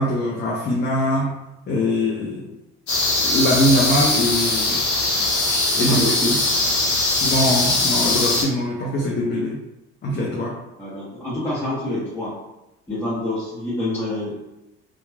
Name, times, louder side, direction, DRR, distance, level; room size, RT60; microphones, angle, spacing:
voice 1, 0.0-1.4 1.7-2.5 3.2-4.8 5.8-6.1 7.2-9.6 10.0-10.6, left 1 dB, 30° left, -2 dB, 0.5 m, -22 dB
sound 1, 2.9-8.4, left 2 dB, 90° left, 0.8 m, -21 dB
voice 2, 5.7-6.3 10.8-12.3 12.9-14.4, left 1 dB, 5° left, -10 dB, 1.0 m, -26 dB
2.9 x 2.3 x 2.2 m, 0.93 s
hypercardioid pair, 70°, 35 cm